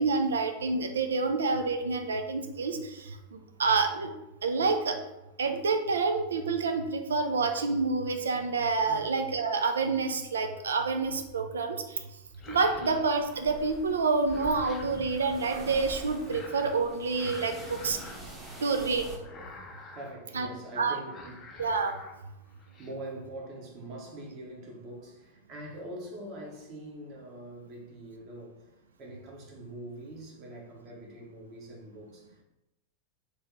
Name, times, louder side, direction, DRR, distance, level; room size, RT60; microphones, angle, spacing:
voice 1, 0.0-4.1 4.4-5.0 5.4-11.8 12.5-18.0 18.6-19.1 20.3-20.5 20.8-21.0 21.6-22.0, right 4 dB, 70° right, 6 dB, 0.4 m, -28 dB
sound 1, 11.0-11.4 12.2-13.8 14.1-15.4 16.2-16.8 17.1-18.9 19.2-20.2 20.6-20.8 21.1-22.1 22.5-22.9, left 3 dB, 30° left, 0.5 m, -48 dB
sound 2, 13.2-19.2, right 1 dB, 15° right, 0.8 m, -46 dB
voice 2, 19.9-21.5 22.8-28.7 29.0-32.4, right 1 dB, 35° right, -1 dB, 0.9 m, -43 dB
2.8 x 2.7 x 3.5 m, 0.94 s
figure-of-eight pair, 90°, 0 cm